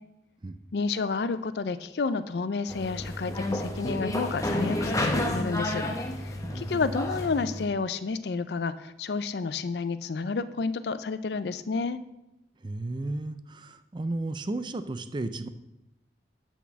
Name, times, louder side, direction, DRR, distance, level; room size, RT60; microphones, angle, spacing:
voice 1, 0.7-5.8 6.2-12.0, left 4 dB, 70° left, 13 dB, 0.4 m, -30 dB
sound 1, 2.7-7.7, left 1 dB, 20° left, 0.9 m, -30 dB
voice 2, 6.4-6.8 12.6-15.5, right 2 dB, 25° right, 11 dB, 0.4 m, -34 dB
6.2 x 5.9 x 7.0 m, 0.91 s
head